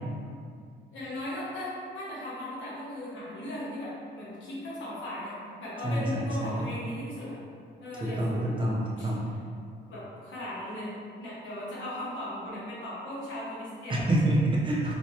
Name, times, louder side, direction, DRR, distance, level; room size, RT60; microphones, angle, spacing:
voice 1, 0.9-7.4 7.8-8.5 9.0-9.1 9.9-10.9 11.2-14.1, left 1 dB, 75° left, -8 dB, 0.9 m, -37 dB
voice 2, 5.8-6.6 8.0-9.3 13.9-14.9, right 1 dB, 25° right, -5 dB, 0.5 m, -27 dB
2.8 x 2.1 x 2.3 m, 2.3 s
cardioid pair, 90°, 20 cm